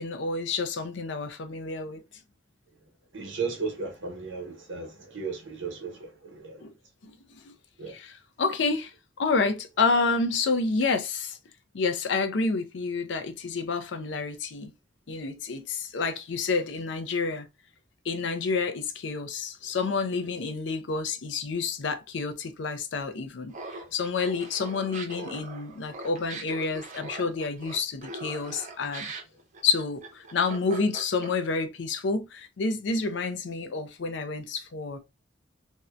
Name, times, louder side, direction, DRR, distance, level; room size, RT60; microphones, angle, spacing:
voice 1, 0.0-2.0 6.6-6.7 7.0-7.5 7.9-11.4 11.7-14.7 15.1-17.5 18.0-29.1 29.6-35.0, left 4 dB, 70° left, 0.5 m, -29 dB
voice 2, 3.1-6.7 7.8-8.0, right 4 dB, 90° right, 0.9 m, -35 dB
Laughter, 23.5-31.6, right 3 dB, 40° right, 0.6 m, -41 dB
2.6 x 2.1 x 2.4 m
head